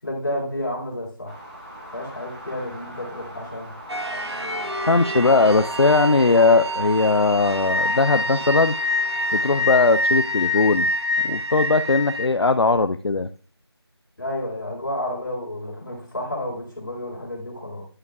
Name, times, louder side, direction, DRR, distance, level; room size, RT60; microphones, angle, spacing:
voice 1, 0.0-1.4 1.9-3.7 14.2-17.9, left 1 dB, 50° left, -3 dB, 3.8 m, -31 dB
sound 1, 1.3-9.7, right 1 dB, 25° right, 2.6 m, -41 dB
sound 2, 3.9-12.3, left 1 dB, 85° right, 1.0 m, -26 dB
voice 2, 4.9-8.7 9.3-10.9 11.2-13.3, left 3 dB, 75° left, 9 dB, 0.5 m, -19 dB
11.0 x 6.6 x 2.3 m, 0.40 s
figure-of-eight pair, 175°, 14 cm